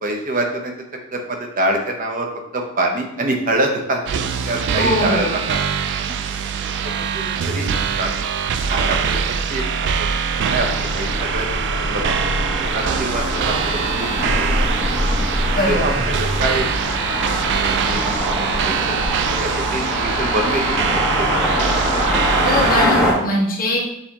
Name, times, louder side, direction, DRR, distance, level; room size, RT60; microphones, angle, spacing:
voice 1, 0.0-0.7 1.1-2.3 2.5-4.2 4.4-5.6 6.8-7.7 8.0-8.1 8.6-9.6 10.0-11.5 11.7-12.3 12.7-14.5 15.7-16.7 17.9-19.0 19.3-20.6 20.9-21.5, right 2 dB, 40° right, 2 dB, 0.7 m, -25 dB
sound 1, 4.1-22.9, right 6 dB, 60° right, 0.3 m, -23 dB
voice 2, 4.8-5.4 15.5-16.1 22.4-23.8, left 1 dB, 45° left, -2 dB, 1.1 m, -21 dB
sound 2, 10.3-23.1, equal, 5° right, 1.2 m, -23 dB
6.5 x 2.8 x 2.9 m, 0.82 s
head